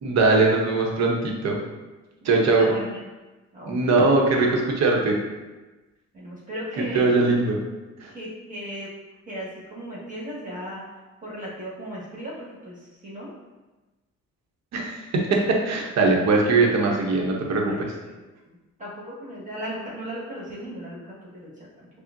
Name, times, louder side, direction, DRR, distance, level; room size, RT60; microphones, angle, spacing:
voice 1, 0.0-1.6 2.2-2.7 3.7-5.2 6.8-7.6 8.0-8.1 14.7-17.9, right 3 dB, 60° right, 0 dB, 0.8 m, -21 dB
voice 2, 2.2-3.0 3.5-3.8 6.1-7.1 8.1-8.9 9.3-10.8 11.2-13.3 17.7-18.1 18.4-21.9, equal, 25° right, -7 dB, 1.5 m, -36 dB
5.6 x 2.1 x 2.6 m, 1.2 s
cardioid pair, 90°, 30 cm